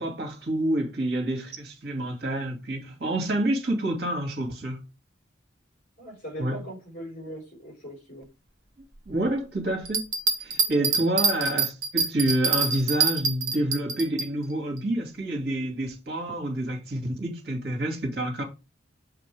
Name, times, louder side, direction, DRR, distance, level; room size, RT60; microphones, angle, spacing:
voice 1, 0.0-4.8 6.4-6.6 9.1-10.0 10.4-18.4, right 1 dB, 55° right, 2.4 m, -28 dB
voice 2, 6.0-8.3 10.7-11.2, equal, 45° left, 4.6 m, -40 dB
Bell, 9.8-14.3 14.8-14.9, right 5 dB, 80° right, 1.3 m, -25 dB
7.1 x 5.1 x 3.5 m
head